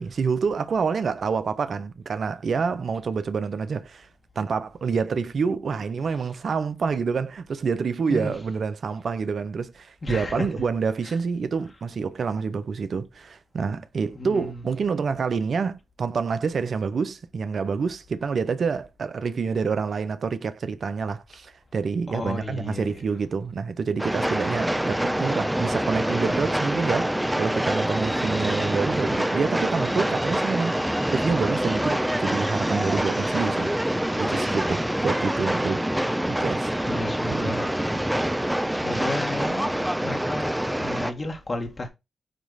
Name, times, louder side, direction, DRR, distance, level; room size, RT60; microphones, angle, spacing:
voice 1, 0.0-4.1 4.4-33.7 34.2-35.8 36.3-36.7 37.3-37.6, right 5 dB, 65° right, 0.7 m, -27 dB
voice 2, 10.0-10.7 11.1-11.2 14.1-14.6 22.1-23.0 36.8-37.7 38.7-41.9, left 2 dB, 45° left, 1.9 m, -33 dB
Train, 24.0-41.1, right 1 dB, 10° right, 0.9 m, -26 dB
9.1 x 3.1 x 4.1 m
supercardioid pair, 40°, 0 cm